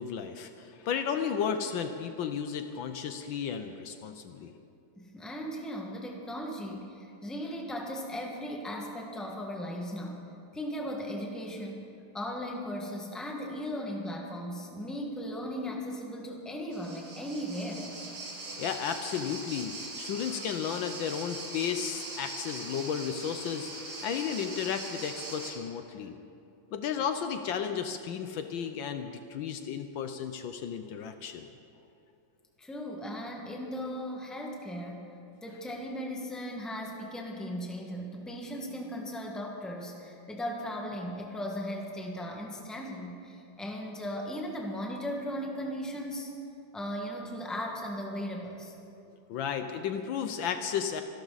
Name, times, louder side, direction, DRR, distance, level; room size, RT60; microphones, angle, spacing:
voice 1, 0.0-4.5 18.6-26.2 26.7-31.5 49.3-51.0, left 7 dB, 70° left, 8 dB, 1.4 m, -33 dB
voice 2, 5.0-10.2 10.5-11.9 12.1-18.0 32.6-35.1 35.4-46.3 46.7-48.7, equal, ahead, 0 dB, 1.4 m, -37 dB
sound 1, 16.7-25.5, right 2 dB, 50° right, 2.8 m, -41 dB
26.0 x 12.0 x 4.1 m, 2.7 s
omnidirectional pair, 2.3 m